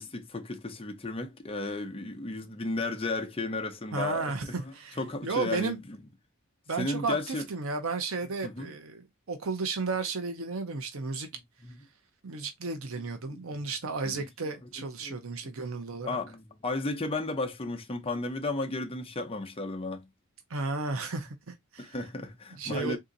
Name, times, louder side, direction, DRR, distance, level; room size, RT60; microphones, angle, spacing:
voice 1, 0.0-6.0 6.8-7.5 8.4-8.7 11.6-11.8 13.2-13.4 14.0-14.3 15.0-15.2 15.4-15.5 16.0-20.1 21.8-23.0, left 2 dB, 25° left, 0.8 m, -34 dB
voice 2, 3.9-5.0 5.2-5.8 6.7-11.3 12.2-16.2 20.5-22.0 22.5-23.0, right 4 dB, 65° right, 0.7 m, -33 dB
3.7 x 2.8 x 3.8 m
head